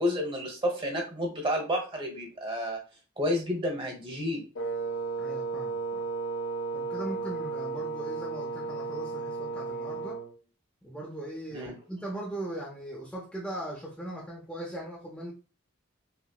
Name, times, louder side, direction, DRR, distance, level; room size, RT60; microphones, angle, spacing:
voice 1, 0.0-2.8 3.2-4.4 11.5-11.7, equal, 25° right, 0.9 m, -30 dB
Wind instrument woodwind instrument, 4.5-10.3, right 4 dB, 65° left, 0.7 m, -34 dB
voice 2, 5.2-6.0 6.7-10.2 10.8-15.3, right 1 dB, 5° left, 0.5 m, -39 dB
5.5 x 2.0 x 2.3 m
head